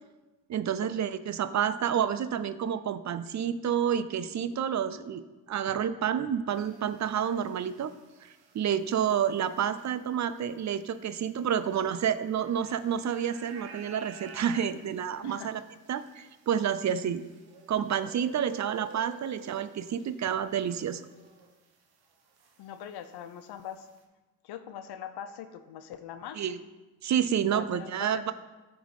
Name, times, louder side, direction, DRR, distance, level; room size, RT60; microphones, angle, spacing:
voice 1, 0.5-7.9 8.2-15.6 15.9-17.2 17.7-21.1 26.4-26.6 27.0-28.3, right 8 dB, 45° right, 14 dB, 0.5 m, -29 dB
sound 1, 6.5-21.7 22.0-24.0, right 7 dB, 65° right, 1.1 m, -52 dB
voice 2, 15.2-15.6 22.6-23.9 24.4-26.5 27.5-28.3, left 9 dB, 70° left, 10 dB, 0.7 m, -42 dB
8.7 x 3.7 x 4.8 m, 1.1 s
supercardioid pair, 55°, 41 cm